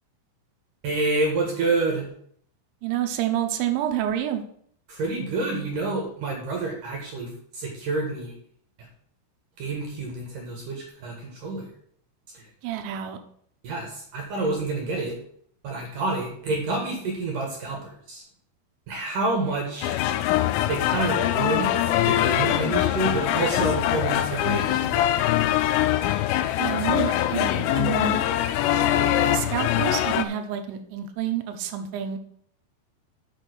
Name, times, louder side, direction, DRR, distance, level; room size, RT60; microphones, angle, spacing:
voice 1, 0.8-2.1 4.9-8.3 9.6-11.7 12.3-12.4 13.6-15.2 15.6-18.2 18.9-19.9 20.7-21.7 22.0-25.2, right 3 dB, 60° right, 0 dB, 2.5 m, -28 dB
voice 2, 2.8-4.4 12.6-13.2 26.6-28.2 29.2-32.2, right 10 dB, 75° right, 6 dB, 3.0 m, -28 dB
sound 1, 19.8-30.2, left 12 dB, 85° left, 3.3 m, -23 dB
7.6 x 6.3 x 6.2 m, 0.63 s
omnidirectional pair, 5.9 m